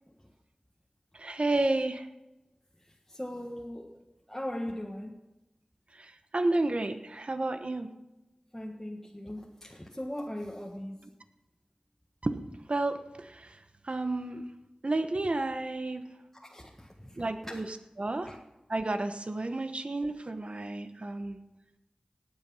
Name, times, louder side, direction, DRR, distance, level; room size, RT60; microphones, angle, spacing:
voice 1, 1.1-2.1 6.0-7.9 12.2-12.4 12.7-13.5 13.9-14.5 14.8-16.1 17.2-17.7 18.0-18.4 18.7-21.4, right 2 dB, 55° right, 8 dB, 1.2 m, -31 dB
voice 2, 2.9-3.9 4.3-5.1 8.5-11.0 16.3-17.6 18.2-18.4, left 1 dB, 10° left, -1 dB, 1.6 m, -39 dB
18.0 x 8.3 x 5.6 m, 0.99 s
wide cardioid pair, 40°, 2 cm